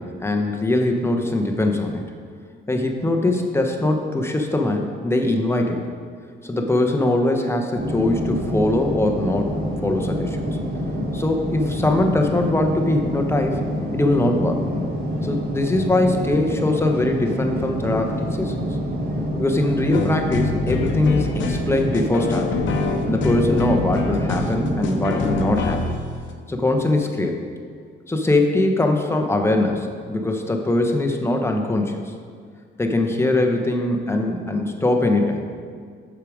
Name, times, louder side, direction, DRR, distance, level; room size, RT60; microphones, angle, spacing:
voice 1, 0.0-2.0 2.7-5.8 6.4-9.6 9.8-10.4 11.1-13.6 13.9-14.6 15.2-18.5 19.4-22.6 23.1-25.9 26.5-27.4 28.1-32.0 32.8-35.4, left 2 dB, 10° left, 3 dB, 0.9 m, -21 dB
sound 1, 7.7-25.4, equal, 50° right, 1.8 m, -27 dB
sound 2, 19.9-26.3 27.0-27.1, left 4 dB, 70° left, 0.8 m, -26 dB
6.6 x 6.2 x 5.0 m, 2.1 s
cardioid pair, 90°, 20 cm